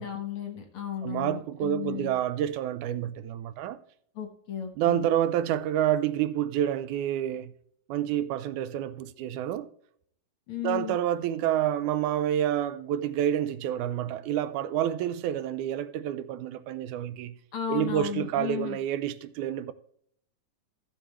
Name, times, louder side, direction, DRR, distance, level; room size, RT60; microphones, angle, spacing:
voice 1, 0.0-2.1 4.1-5.0 10.5-11.0 17.5-18.8, left 9 dB, 60° left, 1.7 m, -34 dB
voice 2, 1.0-3.8 4.8-7.5 7.9-9.7 10.6-17.4 17.7-19.7, right 11 dB, 85° right, 2.0 m, -28 dB
15.0 x 7.3 x 3.1 m
omnidirectional pair, 3.5 m